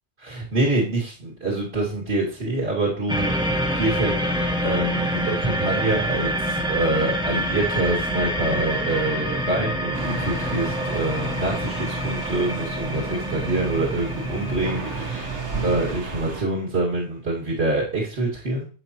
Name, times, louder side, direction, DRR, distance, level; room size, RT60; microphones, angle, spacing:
voice 1, 0.2-3.3 3.7-4.3 4.6-18.6, right 2 dB, 65° right, -6 dB, 2.5 m, -26 dB
sound 1, 3.1-16.0, equal, 5° right, 1.0 m, -27 dB
sound 2, 9.9-16.4, right 3 dB, 85° right, 1.7 m, -33 dB
11.0 x 8.1 x 3.0 m, 0.40 s
omnidirectional pair, 1.2 m